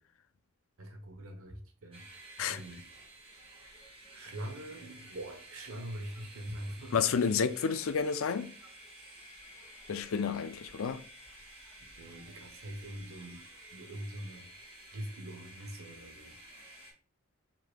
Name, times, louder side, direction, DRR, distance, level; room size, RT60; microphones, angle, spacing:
voice 1, 0.8-2.9 4.1-7.0 12.0-13.4 13.7-14.5 14.9-16.4, right 1 dB, 80° right, 1.0 m, -43 dB
sound 1, 1.9-16.9, right 1 dB, 25° right, 1.7 m, -52 dB
voice 2, 6.9-8.5 9.9-11.0, left 6 dB, 70° left, 0.4 m, -30 dB
4.9 x 3.6 x 2.2 m
head